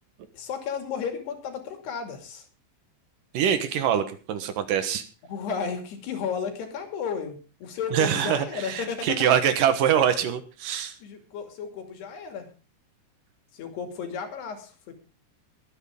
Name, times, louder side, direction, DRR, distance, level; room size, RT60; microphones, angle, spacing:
voice 1, 0.3-2.4 5.2-9.2 11.0-12.5 13.5-14.7, left 6 dB, 65° left, 6 dB, 4.4 m, -33 dB
voice 2, 3.3-5.0 7.9-11.0, right 9 dB, 65° right, 10 dB, 2.3 m, -24 dB
23.0 x 9.3 x 3.7 m, 0.35 s
omnidirectional pair, 5.3 m